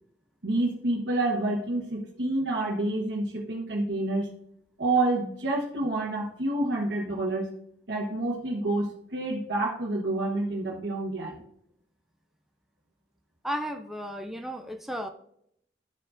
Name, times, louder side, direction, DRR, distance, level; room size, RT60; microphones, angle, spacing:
voice 1, 0.4-4.3 4.8-7.5 7.9-11.4, right 2 dB, 85° right, -4 dB, 1.2 m, -28 dB
voice 2, 13.4-15.1, equal, ahead, 4 dB, 0.3 m, -34 dB
12.0 x 4.8 x 2.5 m, 0.72 s
head